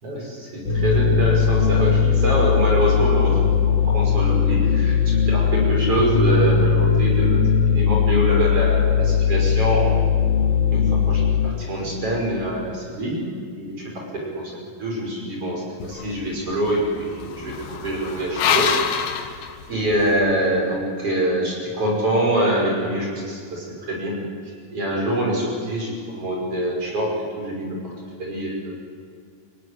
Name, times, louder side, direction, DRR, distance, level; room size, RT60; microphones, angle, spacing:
voice 1, 0.0-7.4 7.7-10.0 10.7-13.2 13.6-18.7 19.7-24.1 24.7-27.9 28.2-28.7, right 1 dB, 40° right, -1 dB, 6.4 m, -25 dB
sound 1, 0.7-11.5, left 7 dB, 60° left, 4.2 m, -19 dB
sound 2, 15.8-20.2, left 7 dB, 90° left, 3.4 m, -27 dB
26.0 x 17.5 x 9.8 m, 2.2 s
omnidirectional pair, 4.1 m